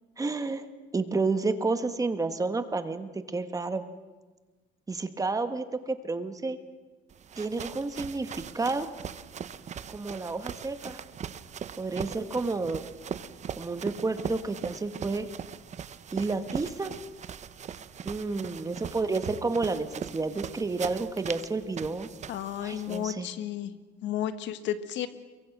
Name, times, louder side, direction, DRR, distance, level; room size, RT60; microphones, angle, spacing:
voice 1, 0.2-0.6 0.9-3.8 4.9-6.6 7.4-8.9 9.9-11.0 11.8-12.8 13.6-15.3 16.1-16.9 18.0-22.1 22.6-23.3, right 3 dB, 20° right, 9 dB, 1.4 m, -30 dB
sound 1, 7.1-23.1, right 8 dB, 40° right, 0.9 m, -40 dB
voice 2, 22.3-23.7 24.0-25.1, left 10 dB, 75° left, 11 dB, 1.6 m, -32 dB
29.0 x 23.0 x 6.1 m, 1.3 s
cardioid pair, 135°, 19 cm